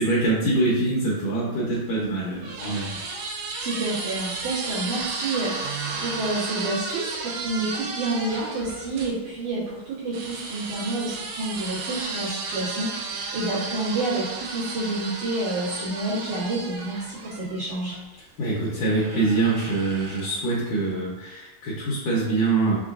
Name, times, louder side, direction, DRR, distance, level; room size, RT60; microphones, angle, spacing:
voice 1, 0.0-3.5 18.4-22.8, right 2 dB, 75° left, -6 dB, 2.0 m, -24 dB
sound 1, 1.8-9.1 10.1-18.0 18.9-20.5, right 4 dB, 80° right, 1.8 m, -34 dB
voice 2, 3.6-18.0, right 2 dB, 65° right, -9 dB, 2.2 m, -29 dB
5.9 x 2.2 x 2.4 m, 1.1 s
omnidirectional pair, 4.2 m